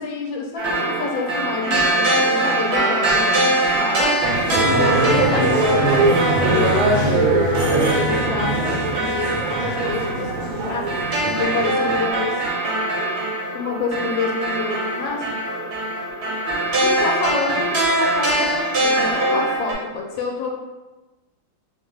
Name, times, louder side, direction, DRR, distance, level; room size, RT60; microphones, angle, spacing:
voice 1, 0.0-3.5 3.8-4.1 4.5-7.4 7.7-10.8 11.2-12.4 13.5-15.2 16.8-20.5, left 4 dB, 80° left, 0 dB, 1.3 m, -27 dB
sound 1, 0.6-19.7, right 2 dB, 55° right, 0.7 m, -22 dB
sound 2, 4.2-12.1, right 2 dB, 90° right, 1.6 m, -22 dB
3.4 x 2.2 x 3.2 m, 1.1 s
omnidirectional pair, 2.1 m